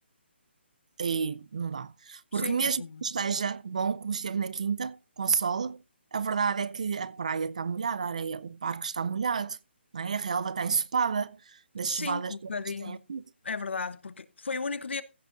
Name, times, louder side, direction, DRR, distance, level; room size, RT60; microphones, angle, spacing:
voice 1, 1.0-5.8 6.1-9.6 9.9-12.3 12.8-13.2, right 6 dB, 35° right, 0.5 m, -30 dB
voice 2, 2.3-3.1 11.8-13.0 13.4-15.0, left 4 dB, 70° left, 1.0 m, -35 dB
15.0 x 6.2 x 3.9 m
hypercardioid pair, 180°, 6 cm